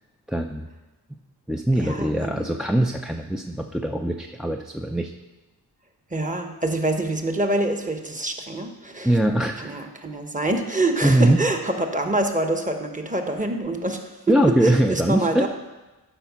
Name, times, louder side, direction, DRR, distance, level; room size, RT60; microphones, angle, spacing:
voice 1, 0.3-0.7 1.5-5.1 9.0-9.7 11.0-11.4 14.3-15.4, right 1 dB, ahead, 3 dB, 0.4 m, -22 dB
voice 2, 1.8-2.5 6.1-9.1 9.6-14.4 14.6-15.5, right 2 dB, 20° right, 5 dB, 1.1 m, -26 dB
11.0 x 4.9 x 6.0 m, 1.1 s
wide cardioid pair, 85°, 40 cm